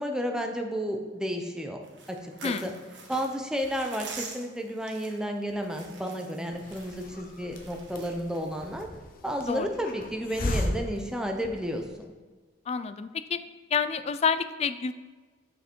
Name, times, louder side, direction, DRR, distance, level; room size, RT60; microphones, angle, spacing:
voice 1, 0.0-1.8 2.1-2.7 3.1-8.9 9.2-11.8, equal, 5° right, 3 dB, 0.6 m, -32 dB
sound 1, 1.8-8.7, right 4 dB, 70° right, 1.3 m, -46 dB
Hiss, 6.5-12.0, left 1 dB, 50° left, 0.8 m, -36 dB
voice 2, 12.7-13.4 13.7-14.9, left 6 dB, 35° left, 12 dB, 0.3 m, -28 dB
6.5 x 5.7 x 4.5 m, 1.4 s
head